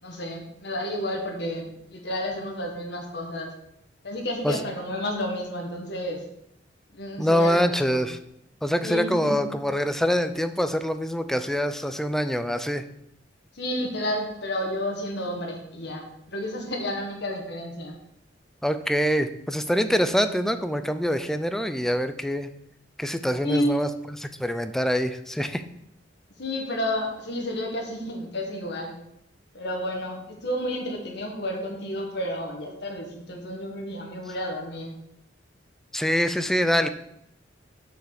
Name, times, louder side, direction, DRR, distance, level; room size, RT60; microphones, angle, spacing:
voice 1, 0.0-3.5 4.0-6.2 6.9-8.1 8.8-9.5 13.5-17.9 23.4-23.9 26.4-29.0 29.5-35.0, left 1 dB, 65° left, 2 dB, 1.7 m, -31 dB
voice 2, 7.2-8.2 8.6-12.9 18.6-22.5 23.0-23.9 24.4-25.6 35.9-36.9, equal, ahead, 9 dB, 0.4 m, -25 dB
6.4 x 4.9 x 6.5 m, 0.78 s
head